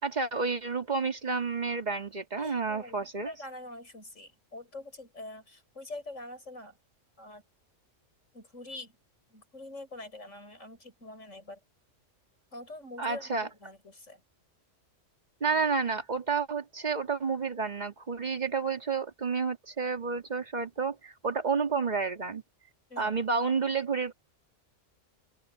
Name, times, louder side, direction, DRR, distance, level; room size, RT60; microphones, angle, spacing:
voice 1, 0.0-3.3 13.0-13.5 15.4-22.4 23.0-24.1, right 5 dB, 35° right, 2.2 m, -30 dB
voice 2, 2.4-6.8 7.2-7.4 8.3-9.0 9.3-11.6 12.5-14.2 22.9-23.2, left 2 dB, 75° left, 7.1 m, -45 dB
open air
omnidirectional pair, 1.3 m